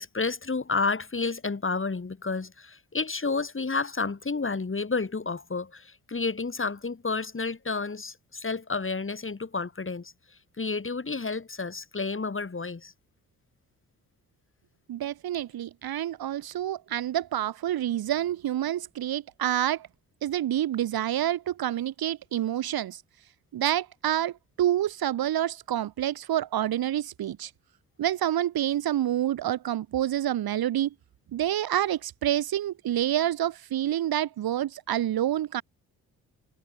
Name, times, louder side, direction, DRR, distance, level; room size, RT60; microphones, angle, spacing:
voice 1, 0.0-12.9, left 4 dB, 30° left, 3.7 m, -31 dB
voice 2, 14.9-19.9 20.2-23.0 23.5-27.5 28.0-30.9 31.3-35.6, right 12 dB, 60° right, 1.2 m, -28 dB
hypercardioid pair, 45°, 42 cm